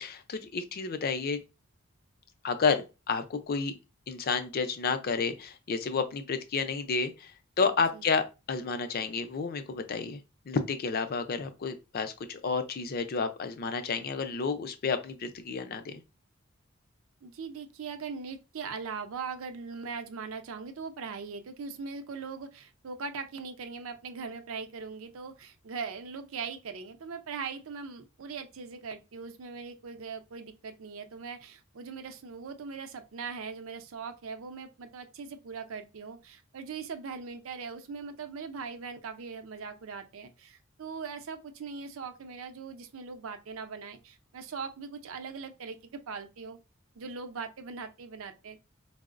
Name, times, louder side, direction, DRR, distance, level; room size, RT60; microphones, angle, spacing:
voice 1, 0.0-1.4 2.4-3.7 4.1-10.2 10.5-16.0, left 5 dB, 50° left, 0.4 m, -31 dB
voice 2, 17.2-46.6 47.0-48.6, right 5 dB, 80° right, 0.5 m, -40 dB
4.4 x 2.0 x 2.4 m
head